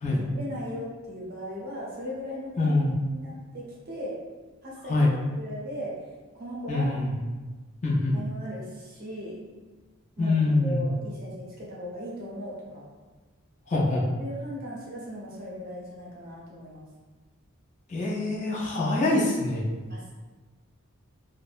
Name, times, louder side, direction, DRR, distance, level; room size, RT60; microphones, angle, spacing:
voice 1, 0.0-2.8 3.1-4.2 4.6-6.0 6.3-7.0 8.1-9.4 10.2-12.8 14.2-16.9 19.9-20.1, equal, 40° right, -5 dB, 0.6 m, -38 dB
voice 2, 2.6-3.0 4.9-5.1 6.7-7.1 7.8-8.1 10.2-10.8 13.7-14.0 17.9-19.7, left 2 dB, 35° left, -5 dB, 0.4 m, -24 dB
2.5 x 2.0 x 2.4 m, 1.3 s
head